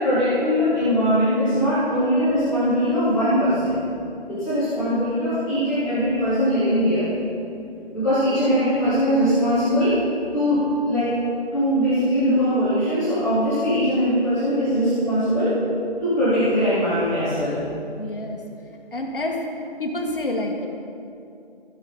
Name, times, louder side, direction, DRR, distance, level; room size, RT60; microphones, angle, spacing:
voice 1, 0.0-3.8 4.3-7.1 7.9-10.0 10.3-11.1 11.5-15.5 16.0-17.6, equal, 5° left, -14 dB, 0.8 m, -21 dB
voice 2, 18.0-18.4 18.9-19.5 19.8-20.7, left 1 dB, 60° left, 1 dB, 1.5 m, -27 dB
15.0 x 6.1 x 3.8 m, 2.6 s
figure-of-eight pair, 155°, 31 cm